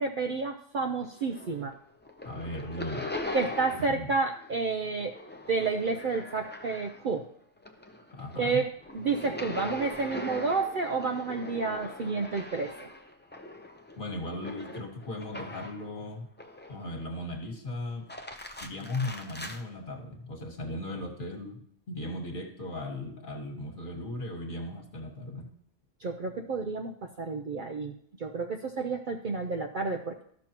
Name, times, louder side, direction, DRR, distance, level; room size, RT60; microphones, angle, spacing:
voice 1, 0.0-1.7 3.3-5.1 5.5-7.3 8.4-12.7 26.0-27.9 28.2-30.2, right 4 dB, 55° right, 4 dB, 0.6 m, -30 dB
sound 1, 1.0-1.7 2.0-4.0 4.3-7.2 7.6-15.9 16.4-17.1 17.9-19.6, left 2 dB, 15° left, 0.3 m, -41 dB
voice 2, 2.2-3.1 3.8-4.1 8.1-8.6 14.0-16.3 16.7-18.1 18.6-25.5, left 1 dB, 40° left, 2 dB, 1.5 m, -37 dB
13.0 x 6.3 x 2.9 m, 0.66 s
omnidirectional pair, 1.3 m